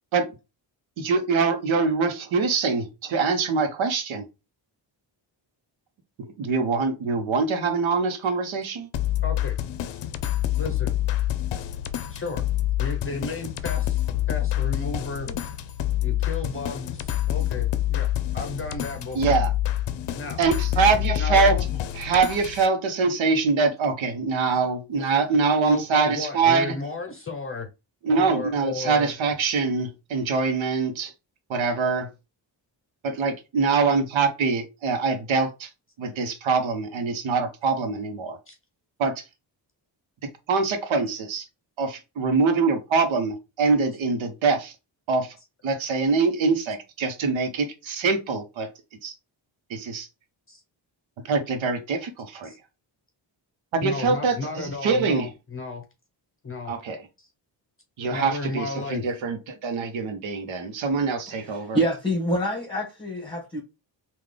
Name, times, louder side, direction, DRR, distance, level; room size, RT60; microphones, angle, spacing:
voice 1, 1.0-4.3 6.2-8.9 19.2-19.5 20.4-21.6 21.9-26.8 28.0-31.1 31.5-32.1 33.0-35.7 36.0-38.4 39.0-39.2 40.2-41.5 41.8-44.7 45.1-45.4 45.6-48.7 49.0-49.1 49.7-50.1 51.2-52.5 53.7-55.3 56.6-57.0 58.0-61.8, right 4 dB, 75° right, 0.9 m, -24 dB
sound 1, 8.9-22.7, left 13 dB, 65° left, 0.6 m, -27 dB
voice 2, 9.2-9.6 10.6-11.0 12.1-12.4 12.8-14.0 14.3-15.4 16.0-18.1 18.3-19.4 20.2-20.4 21.2-21.7 25.0-25.1 25.6-27.7 28.1-29.1 38.5-38.6 50.5-50.6 52.4-52.6 53.8-55.8 56.4-56.7 57.2-57.3 58.1-59.1, left 3 dB, 30° left, 0.7 m, -34 dB
voice 3, 61.4-63.6, equal, 10° left, 1.3 m, -26 dB
3.7 x 2.5 x 3.3 m
cardioid pair, 85°, 47 cm